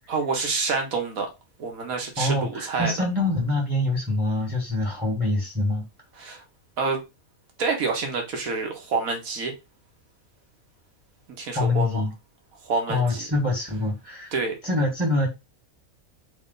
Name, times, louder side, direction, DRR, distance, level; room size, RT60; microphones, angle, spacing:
voice 1, 0.1-1.3 1.6-2.9 6.2-6.4 6.8-7.0 7.6-9.5 11.4-12.0 12.6-13.3 14.3-14.5, right 4 dB, 75° right, 1.5 m, -27 dB
voice 2, 2.2-5.8 11.5-12.1 12.9-14.3 14.6-15.3, left 2 dB, 5° right, 1.2 m, -25 dB
3.4 x 3.1 x 3.8 m
omnidirectional pair, 1.5 m